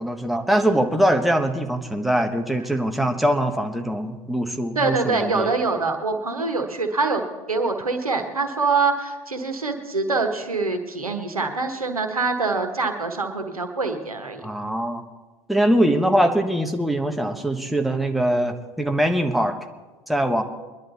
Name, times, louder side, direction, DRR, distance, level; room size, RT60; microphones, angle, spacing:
voice 1, 0.0-5.5 14.4-15.0 15.5-19.5 20.1-20.4, right 1 dB, ahead, 4 dB, 1.3 m, -22 dB
voice 2, 4.7-7.2 7.5-14.4, right 3 dB, 90° right, 6 dB, 1.3 m, -24 dB
22.5 x 11.0 x 4.2 m, 1.2 s
figure-of-eight pair, 70°, 18 cm